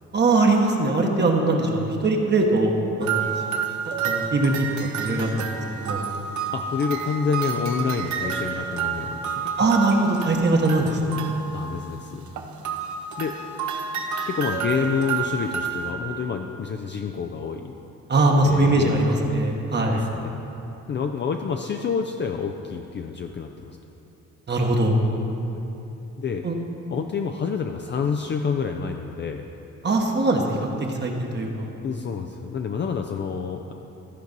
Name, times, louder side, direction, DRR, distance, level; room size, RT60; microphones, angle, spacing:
voice 1, 0.1-3.3 4.0-4.7 5.0-6.0 9.6-11.3 18.1-20.0 24.5-25.0 26.4-26.5 29.8-30.6 31.0-31.7, right 2 dB, 35° right, 1 dB, 1.1 m, -21 dB
sound 1, 3.0-11.8 12.3-15.9, right 6 dB, 70° right, 0.8 m, -30 dB
voice 2, 6.5-9.5 11.5-12.3 13.2-13.3 14.3-17.7 18.4-19.5 19.8-20.5 20.9-23.7 26.2-26.4 26.9-29.5 31.8-33.7, left 6 dB, 40° left, 4 dB, 0.5 m, -28 dB
13.0 x 4.6 x 5.3 m, 2.9 s
cardioid pair, 90°, 30 cm